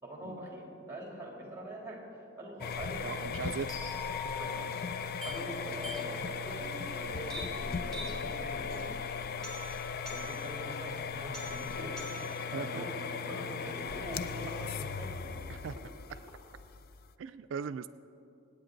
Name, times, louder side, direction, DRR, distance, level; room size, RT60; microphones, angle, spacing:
voice 1, 0.0-2.0 2.4-3.3 4.2-4.5 5.2-6.2 6.4-8.9 10.0-15.1, right 1 dB, 15° right, -2 dB, 3.2 m, -44 dB
sound 1, 2.6-17.1, left 6 dB, 50° left, 0.5 m, -38 dB
voice 2, 3.0-3.9 4.6-4.7 11.7-11.9 12.4-12.9 15.5-15.8 17.2-17.9, right 6 dB, 85° right, 11 dB, 0.4 m, -39 dB
sound 2, 3.7-13.7, left 2 dB, ahead, 3.5 m, -44 dB
25.0 x 9.3 x 3.9 m, 2.7 s
head